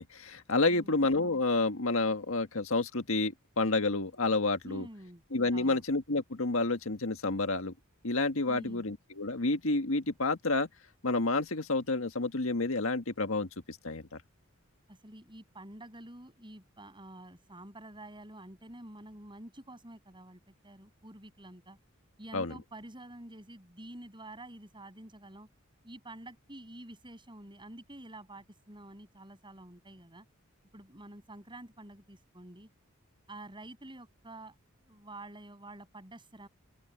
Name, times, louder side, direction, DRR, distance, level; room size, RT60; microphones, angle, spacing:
voice 1, 0.0-4.9 5.3-7.7 8.0-10.7 11.0-14.2 22.3-22.5, left 3 dB, 70° left, 1.8 m, -29 dB
voice 2, 4.6-5.2 5.5-5.8 8.5-8.8 14.9-21.8 22.2-25.5 25.8-30.3 30.7-32.7 33.3-34.5 34.8-36.5, right 1 dB, 25° right, 8.0 m, -48 dB
open air
head